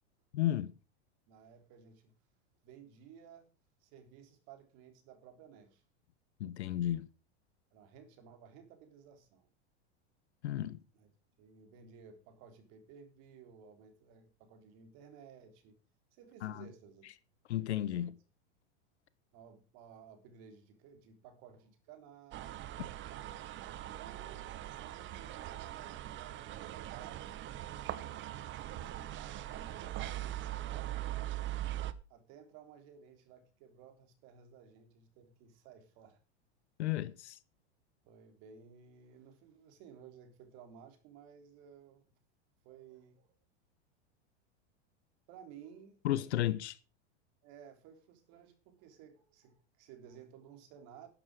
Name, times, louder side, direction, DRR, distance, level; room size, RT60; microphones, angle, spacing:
voice 1, 0.3-0.7 6.4-7.0 10.4-10.8 16.4-16.7 17.5-18.1 36.8-37.4 46.0-46.8, left 13 dB, 80° left, 1.3 m, -33 dB
voice 2, 1.3-2.2 2.6-3.5 3.8-5.8 7.7-9.4 10.9-11.1 11.4-15.8 16.1-17.1 17.7-18.1 19.3-22.7 24.0-30.9 32.1-36.2 38.0-42.0 42.6-43.3 45.3-46.0 47.4-51.1, right 7 dB, 55° right, 3.6 m, -56 dB
sound 1, 22.3-31.9, right 13 dB, 35° right, 1.0 m, -41 dB
11.5 x 10.5 x 4.9 m
hypercardioid pair, 115°, 33 cm